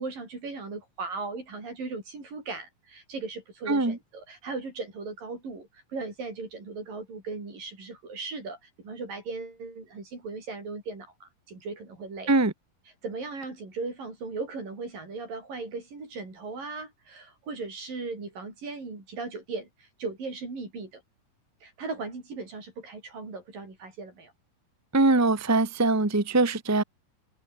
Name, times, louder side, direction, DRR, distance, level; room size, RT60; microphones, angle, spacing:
voice 1, 0.0-12.3 13.0-21.0 21.6-24.3, right 3 dB, 85° right, 9.8 m, -37 dB
voice 2, 24.9-26.8, right 2 dB, 10° right, 0.7 m, -22 dB
omnidirectional pair, 3.8 m